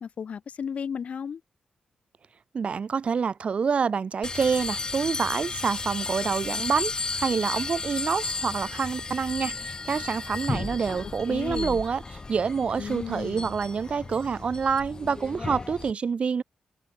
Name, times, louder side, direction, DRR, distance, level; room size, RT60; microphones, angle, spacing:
voice 1, 0.0-1.4 11.2-11.8 12.8-13.5, left 7 dB, 70° left, 3.7 m, -34 dB
voice 2, 2.5-12.0 12.3-16.4, right 6 dB, 60° right, 1.3 m, -27 dB
sound 1, 4.2-15.9, left 3 dB, 35° left, 0.7 m, -34 dB
cardioid pair, 75°, 2 cm